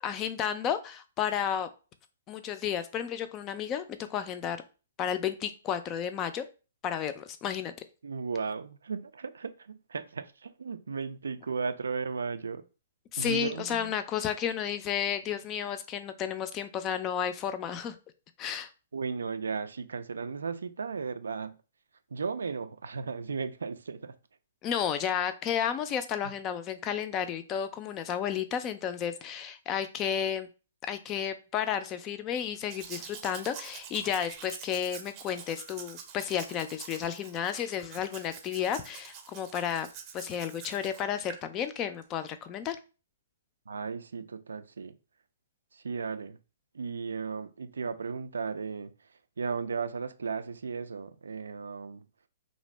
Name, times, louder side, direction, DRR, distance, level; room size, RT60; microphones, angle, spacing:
voice 1, 0.0-1.7 2.3-4.6 5.0-6.4 6.8-7.7 13.1-18.0 18.4-18.7 24.6-30.5 30.8-39.9 40.1-42.8, left 9 dB, 25° left, 0.3 m, -32 dB
voice 2, 8.0-12.6 13.2-14.0 18.9-21.6 22.1-24.2 26.2-26.3 43.7-45.0 45.7-46.4 46.7-52.1, right 5 dB, 85° right, 0.3 m, -35 dB
Domestic sounds home sounds, 32.7-41.4 42.0-42.1, right 7 dB, 35° right, 0.6 m, -46 dB
2.5 x 2.1 x 3.2 m
hypercardioid pair, 135°, 0 cm